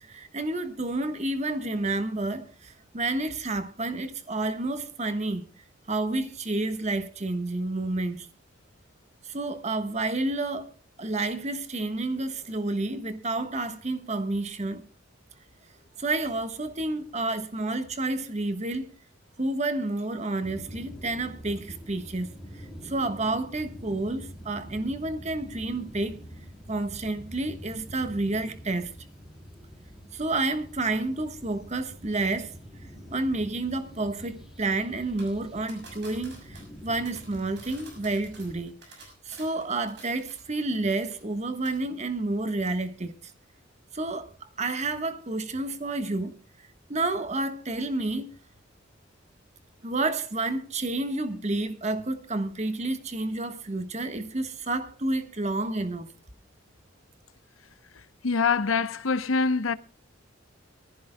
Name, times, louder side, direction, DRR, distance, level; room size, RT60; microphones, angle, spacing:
voice 1, 0.0-5.4 5.9-8.3 9.2-10.7 11.0-14.8 16.0-18.9 19.4-26.2 26.7-28.9 30.1-32.5 33.1-43.3 43.9-46.4 46.9-48.3 49.8-56.1, right 2 dB, 35° right, 1.3 m, -30 dB
sound 1, 20.4-38.6, equal, 5° right, 3.0 m, -46 dB
sound 2, 35.2-40.6 40.9-41.4 41.7-41.8, right 3 dB, 60° right, 6.4 m, -50 dB
voice 2, 58.2-59.7, left 4 dB, 90° left, 0.8 m, -24 dB
23.5 x 15.0 x 2.2 m
head